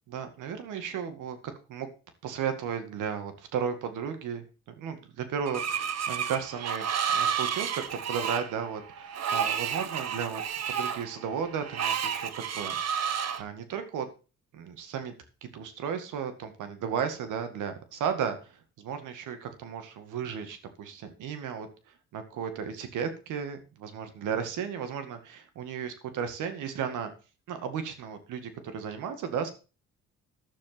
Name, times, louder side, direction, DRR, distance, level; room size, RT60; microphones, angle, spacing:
voice 1, 0.1-1.9 2.2-12.8 13.4-14.1 14.5-15.1 15.4-21.7 22.1-27.1 27.5-29.5, right 7 dB, 85° right, 8 dB, 2.1 m, -34 dB
Screech, 5.5-13.4, right 8 dB, 55° right, 1.3 m, -31 dB
11.5 x 7.2 x 5.9 m, 0.33 s
cardioid pair, 90°, 30 cm